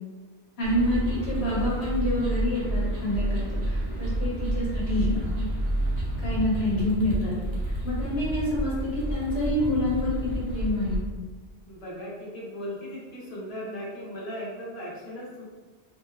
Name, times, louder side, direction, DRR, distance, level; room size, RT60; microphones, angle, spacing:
voice 1, 0.6-5.4 6.2-7.3 7.8-11.0, left 1 dB, 75° left, -5 dB, 1.1 m, -27 dB
sound 1, 0.6-11.0, right 1 dB, 70° right, 0.9 m, -29 dB
voice 2, 11.7-15.4, equal, 35° left, -6 dB, 0.9 m, -37 dB
2.6 x 2.3 x 3.3 m, 1.3 s
omnidirectional pair, 1.1 m